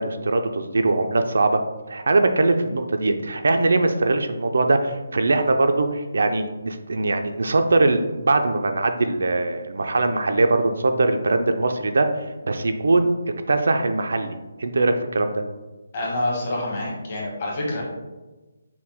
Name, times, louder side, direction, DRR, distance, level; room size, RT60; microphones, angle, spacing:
voice 1, 0.0-1.6 1.9-12.1 12.4-13.1 13.5-15.4, right 2 dB, 65° right, 7 dB, 0.4 m, -21 dB
voice 2, 15.9-17.8, left 1 dB, 25° left, -3 dB, 0.9 m, -27 dB
5.7 x 2.1 x 3.4 m, 1.1 s
hypercardioid pair, 175°, 0 cm